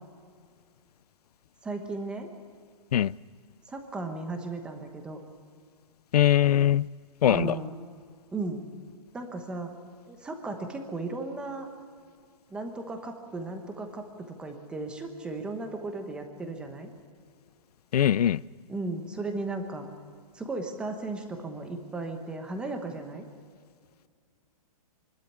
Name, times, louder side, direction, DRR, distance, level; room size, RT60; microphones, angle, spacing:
voice 1, 1.6-2.3 3.7-5.2 7.3-7.8 8.3-8.6 9.1-9.8 10.1-11.7 12.5-16.9 18.7-19.9 20.3-23.3, right 3 dB, 5° right, 5 dB, 1.1 m, -35 dB
voice 2, 6.1-6.9 7.2-7.6 17.9-18.4, left 11 dB, 80° left, 22 dB, 0.5 m, -21 dB
25.0 x 12.5 x 9.6 m, 2.1 s
hypercardioid pair, 175°, 20 cm